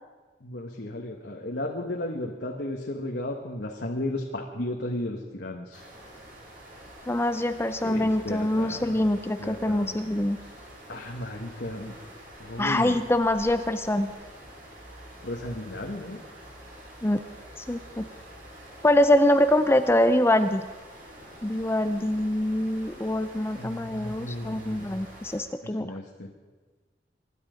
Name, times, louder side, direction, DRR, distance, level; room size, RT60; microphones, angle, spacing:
voice 1, 0.4-5.8 7.8-9.0 9.4-10.0 10.9-11.9 12.4-13.0 15.2-16.2 23.6-25.0 25.8-26.3, left 1 dB, 65° left, 0 dB, 1.4 m, -34 dB
sound 1, 5.7-25.4, equal, 50° right, 6.5 m, -47 dB
voice 2, 7.1-10.4 12.6-14.1 17.0-17.2 17.6-18.1 18.8-20.6 21.4-25.9, left 1 dB, 15° left, 9 dB, 0.5 m, -24 dB
24.0 x 11.5 x 5.2 m, 1.3 s
head